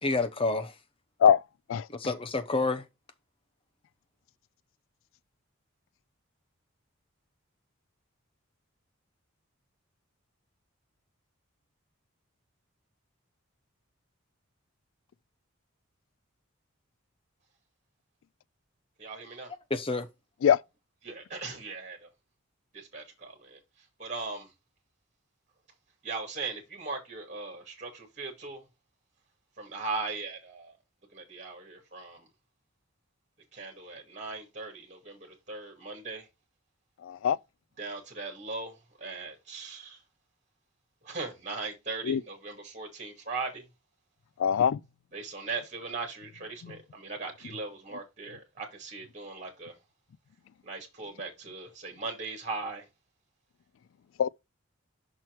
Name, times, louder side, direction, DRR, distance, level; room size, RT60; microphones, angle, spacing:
voice 1, 0.0-0.7 1.9-2.9 19.7-20.1, left 3 dB, 25° left, 0.7 m, -29 dB
voice 2, 19.0-19.5 21.0-22.1 22.7-23.6 24.0-24.5 26.0-28.6 29.6-30.7 31.1-32.2 33.5-36.3 37.8-40.0 41.0-43.6 45.1-49.7 50.6-52.8, right 3 dB, 35° right, 2.2 m, -39 dB
voice 3, 37.1-37.4 42.1-42.2 44.4-44.8 54.2-54.3, left 8 dB, 65° left, 0.3 m, -22 dB
6.2 x 4.4 x 4.5 m
head